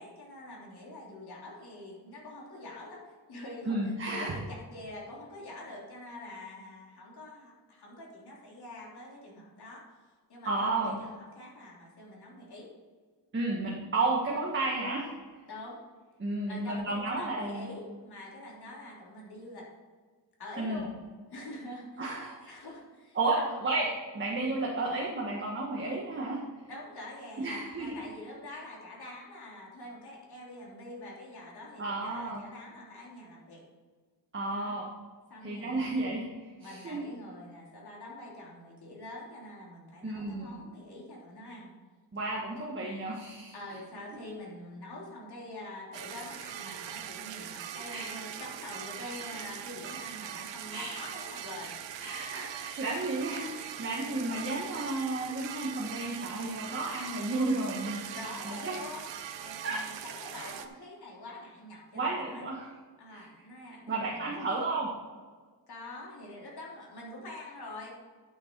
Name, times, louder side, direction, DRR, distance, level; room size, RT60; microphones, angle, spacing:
voice 1, 0.0-9.8 10.3-12.7 15.5-15.8 16.5-19.7 20.4-20.9 21.3-23.6 26.7-33.6 34.5-34.8 35.3-36.0 36.6-41.7 43.5-51.8 58.1-59.1 59.4-62.5 63.0-64.5 65.7-67.9, left 1 dB, 60° left, -3 dB, 3.3 m, -45 dB
voice 2, 3.6-4.4 10.4-10.9 13.3-15.1 16.2-17.7 20.6-20.8 22.0-22.6 23.1-26.5 27.4-28.0 28.5-28.6 31.8-32.4 34.3-34.9 35.4-36.2 36.6-37.0 40.0-40.5 42.1-43.5 47.3-47.5 47.9-48.1 50.7-51.0 52.0-58.2 58.4-58.9 59.6-59.8 60.3-60.5 61.9-62.7 63.1-63.3 63.9-64.9, right 2 dB, 25° right, -3 dB, 1.5 m, -32 dB
sound 1, 45.9-60.7, right 9 dB, 85° right, 0.9 m, -41 dB
11.0 x 6.6 x 4.6 m, 1.5 s
wide cardioid pair, 130°, 43 cm